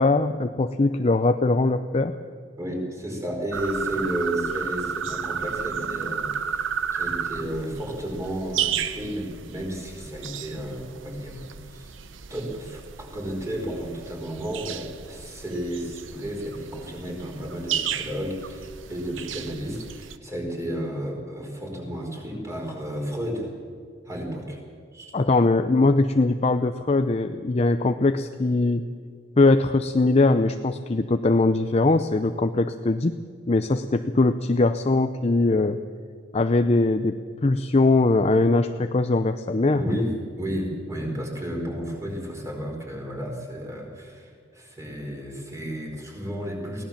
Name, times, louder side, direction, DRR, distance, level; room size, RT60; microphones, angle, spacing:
voice 1, 0.0-2.2 25.1-28.8 29.4-33.1 33.5-35.8 36.3-40.0, left 2 dB, 30° left, 8 dB, 0.5 m, -21 dB
voice 2, 2.6-11.9 12.3-23.5 24.0-24.6 24.9-25.1 39.7-46.8, equal, 15° right, 0 dB, 4.7 m, -32 dB
sound 1, 3.5-20.2, right 7 dB, 75° right, 0.9 m, -33 dB
23.0 x 17.0 x 7.3 m, 2.1 s
head